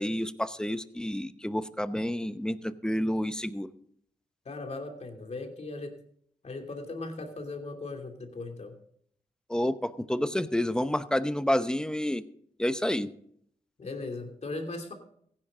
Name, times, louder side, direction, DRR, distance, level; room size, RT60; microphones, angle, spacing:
voice 1, 0.0-3.7 9.5-12.2 12.6-13.1, left 1 dB, 5° left, 12 dB, 0.8 m, -29 dB
voice 2, 4.4-6.0 6.4-8.7 13.8-14.9, left 2 dB, 50° left, 3 dB, 2.9 m, -38 dB
15.5 x 10.5 x 3.7 m, 0.65 s
cardioid pair, 60°, 14 cm